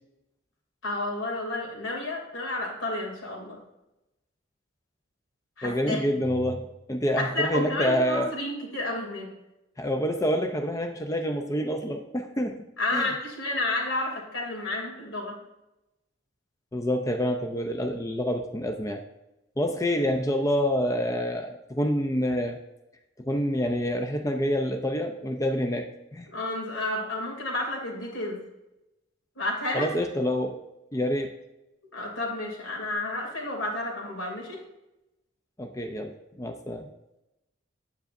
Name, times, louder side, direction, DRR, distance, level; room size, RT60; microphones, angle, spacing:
voice 1, 0.8-3.6 5.6-6.0 7.2-9.3 12.8-15.4 26.3-28.4 29.4-29.9 31.9-34.6, left 2 dB, 85° left, 0 dB, 2.8 m, -31 dB
voice 2, 5.6-8.3 9.8-12.6 12.9-13.1 16.7-19.0 19.6-22.6 23.2-26.3 29.7-30.6 30.9-31.4 35.6-36.9, equal, 15° left, 5 dB, 0.5 m, -27 dB
9.4 x 8.2 x 2.6 m, 0.94 s
head